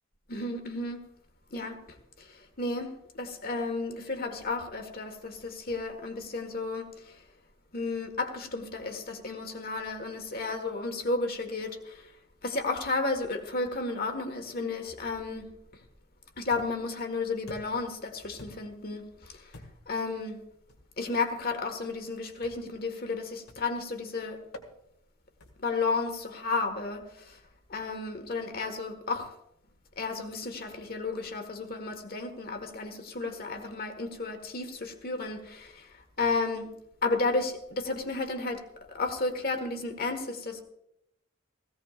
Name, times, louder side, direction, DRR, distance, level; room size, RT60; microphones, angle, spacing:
voice 1, 0.3-1.0 1.5-7.2 7.7-12.1 12.4-15.8 16.4-20.4 21.0-24.4 25.6-27.4 27.7-29.3 30.0-36.7 37.0-40.6, left 3 dB, 45° left, 1.6 m, -33 dB
sound 1, 16.5-16.9 17.5-17.9 18.4-18.8 19.5-20.0 20.7-20.9 22.4-22.8 23.5-23.8 24.5-24.7 25.4-25.7, left 1 dB, 90° left, 2.1 m, -49 dB
18.0 x 16.0 x 2.5 m
head